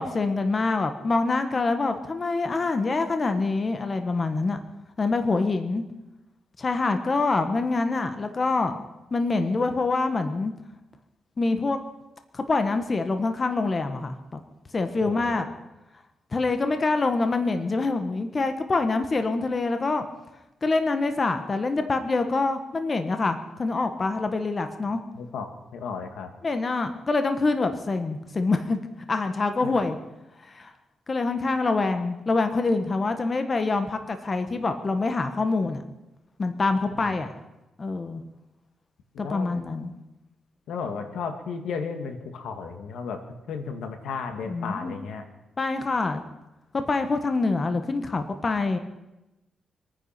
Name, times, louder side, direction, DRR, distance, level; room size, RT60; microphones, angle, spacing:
voice 1, 0.0-4.6 5.0-5.8 6.6-8.8 9.1-10.5 11.4-11.8 12.3-14.4 14.7-15.4 16.3-20.1 20.6-25.0 26.4-28.8 29.1-30.0 30.4-30.7 31.1-35.8 36.4-37.3 37.8-38.2 39.2-39.9 44.5-45.0 45.6-46.2 46.7-48.8, left 3 dB, 35° left, 8 dB, 1.4 m, -25 dB
voice 2, 15.0-15.4 25.1-26.3 29.6-29.7 36.9-37.1 39.1-39.6 40.7-45.3, left 5 dB, 90° left, 6 dB, 2.0 m, -34 dB
25.0 x 9.8 x 5.9 m, 0.97 s
cardioid pair, 105°, 0 cm